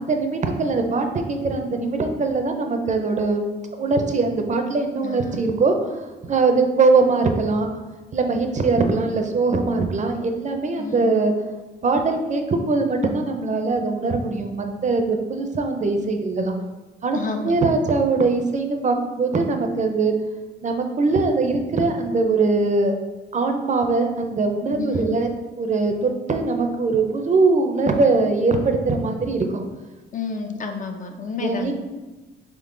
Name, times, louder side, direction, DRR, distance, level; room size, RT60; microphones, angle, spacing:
voice 1, 0.0-3.4 3.8-7.7 8.1-11.3 11.8-16.5 17.0-17.2 17.4-20.1 20.6-23.0 23.3-25.3 25.6-29.6 31.4-31.7, right 3 dB, 35° right, 5 dB, 0.6 m, -21 dB
voice 2, 5.0-5.5 10.8-11.1 17.1-17.6 24.8-25.1 30.1-31.7, left 4 dB, 40° left, 5 dB, 0.5 m, -30 dB
3.7 x 3.7 x 3.8 m, 1.1 s
cardioid pair, 90°, 20 cm